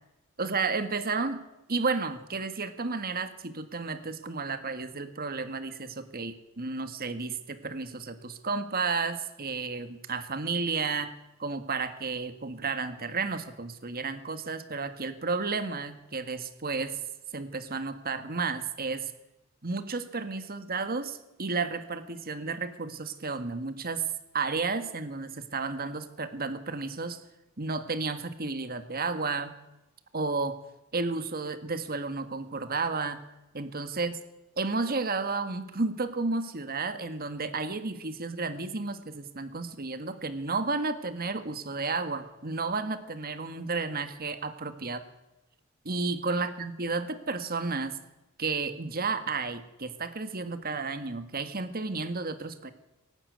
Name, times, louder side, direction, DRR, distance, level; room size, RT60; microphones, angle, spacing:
voice 1, 0.4-1.4 1.7-11.1 11.4-17.0 17.3-19.1 19.6-24.1 24.3-27.2 27.6-29.5 30.1-30.6 30.9-33.2 33.5-34.1 34.6-45.0 45.8-48.0 48.4-52.7, right 4 dB, 45° right, 10 dB, 1.8 m, -32 dB
24.0 x 12.0 x 9.5 m, 0.92 s
head